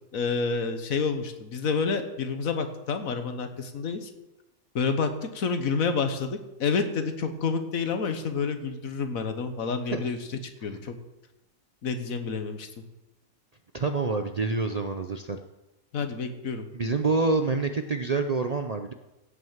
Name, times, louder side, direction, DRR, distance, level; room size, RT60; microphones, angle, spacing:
voice 1, 0.1-4.1 4.7-11.0 11.8-12.7 15.9-16.7, left 5 dB, 80° left, 8 dB, 1.6 m, -29 dB
voice 2, 13.7-15.4 16.7-18.9, right 3 dB, 45° right, 7 dB, 0.5 m, -27 dB
16.5 x 6.2 x 7.3 m, 1.0 s
omnidirectional pair, 1.4 m